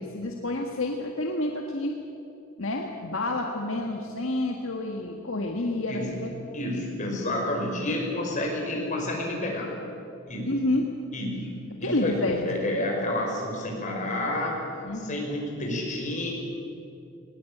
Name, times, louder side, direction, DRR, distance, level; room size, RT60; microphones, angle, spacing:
voice 1, 0.0-1.9 2.6-6.3 10.5-10.9 11.8-12.4 14.8-15.2, left 2 dB, 65° left, 2 dB, 1.7 m, -29 dB
voice 2, 6.5-9.7 10.3-10.5 11.1-11.5 11.8-16.3, left 1 dB, 35° left, -1 dB, 5.7 m, -30 dB
20.5 x 19.5 x 8.8 m, 2.7 s
head